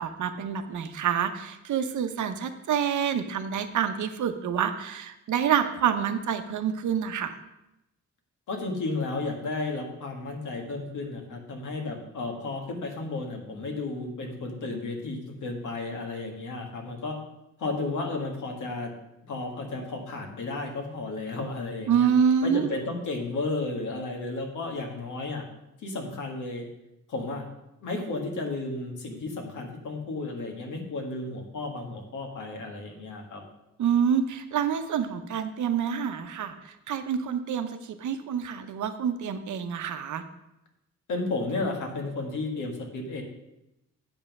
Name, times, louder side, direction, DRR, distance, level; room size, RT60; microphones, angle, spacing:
voice 1, 0.0-7.4 21.9-22.7 33.8-40.2, right 8 dB, 75° right, 9 dB, 0.8 m, -27 dB
voice 2, 8.5-17.2 17.6-18.9 19.2-22.1 22.4-25.4 25.8-26.7 27.1-27.5 27.8-33.4 41.1-43.2, left 3 dB, 80° left, 2 dB, 1.8 m, -33 dB
8.4 x 5.4 x 6.0 m, 0.89 s
wide cardioid pair, 155°, 30 cm